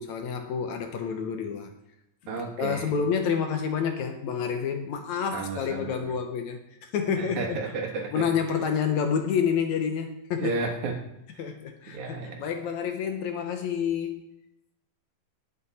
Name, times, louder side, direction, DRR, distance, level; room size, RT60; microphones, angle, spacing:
voice 1, 0.0-1.7 2.3-7.6 8.1-10.6 11.4-14.3, left 7 dB, 70° left, 6 dB, 2.1 m, -29 dB
voice 2, 2.3-2.9 5.3-6.0 7.2-8.2 10.4-10.9 11.9-12.4, right 3 dB, 65° right, 2 dB, 2.9 m, -32 dB
19.0 x 7.9 x 4.2 m, 0.85 s
omnidirectional pair, 3.7 m